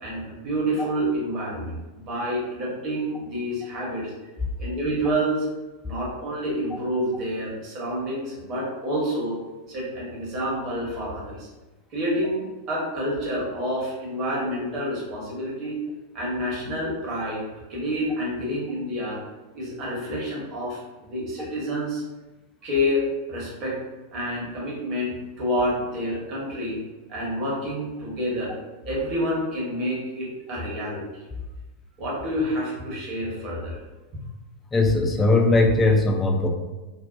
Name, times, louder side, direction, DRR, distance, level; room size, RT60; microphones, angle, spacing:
voice 1, 0.0-4.1 4.6-5.5 5.8-9.3 9.7-11.5 11.9-15.8 16.1-17.4 17.7-19.2 19.5-22.0 22.6-23.0 23.3-23.8 24.1-26.8 27.1-28.5 28.8-31.1 32.0-33.8, equal, 35° right, -5 dB, 1.0 m, -28 dB
voice 2, 34.7-36.5, left 2 dB, 15° left, 1 dB, 0.4 m, -19 dB
2.5 x 2.1 x 2.5 m, 1.1 s
figure-of-eight pair, 90°, 0 cm